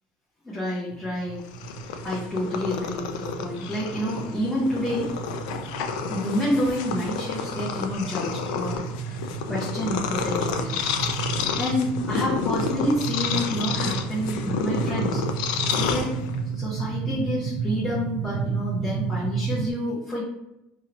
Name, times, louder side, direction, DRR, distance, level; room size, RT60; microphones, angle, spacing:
voice 1, 0.4-1.7 2.0-5.1 6.1-10.9 11.3-15.2 15.7-16.1 16.5-20.2, left 1 dB, 5° left, -8 dB, 0.7 m, -29 dB
sound 1, 0.9-19.7, right 6 dB, 85° right, 0.4 m, -33 dB
Purr, 1.4-16.6, left 6 dB, 90° left, 0.4 m, -30 dB
2.8 x 2.6 x 4.2 m, 0.92 s
cardioid pair, 160°, 4 cm